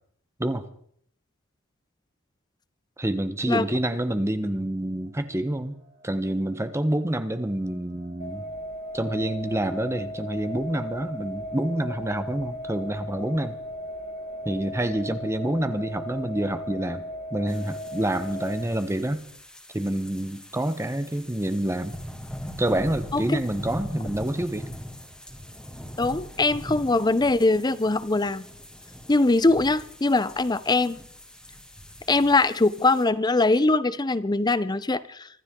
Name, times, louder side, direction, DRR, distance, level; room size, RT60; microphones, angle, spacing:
voice 1, 3.0-5.7 6.0-8.4 8.9-13.6 14.4-17.0 17.3-19.2 19.7-22.0 22.6-24.7, right 1 dB, 15° right, 10 dB, 0.9 m, -27 dB
sound 1, 4.6-19.1, equal, 45° right, 3.1 m, -52 dB
sound 2, 8.2-18.6, equal, 50° left, 3.0 m, -37 dB
sound 3, 17.5-33.0, equal, 5° left, 2.2 m, -41 dB
voice 2, 26.0-28.5 29.1-31.0 32.1-35.3, left 2 dB, 20° left, 16 dB, 0.6 m, -22 dB
25.0 x 13.0 x 3.7 m, 0.65 s
head